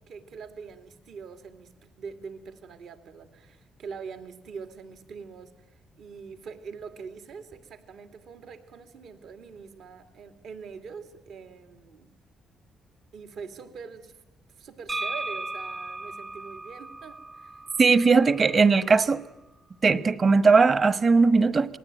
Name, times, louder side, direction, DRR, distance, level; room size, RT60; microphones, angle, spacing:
voice 1, 0.0-12.1 13.1-14.2 14.6-17.6, right 5 dB, 70° right, 2.4 m, -43 dB
sound 1, 14.9-18.7, right 2 dB, 25° right, 0.8 m, -36 dB
voice 2, 17.8-19.2 19.8-21.8, right 4 dB, 40° right, 1.3 m, -19 dB
27.0 x 20.0 x 9.2 m
cardioid pair, 90°, 0 cm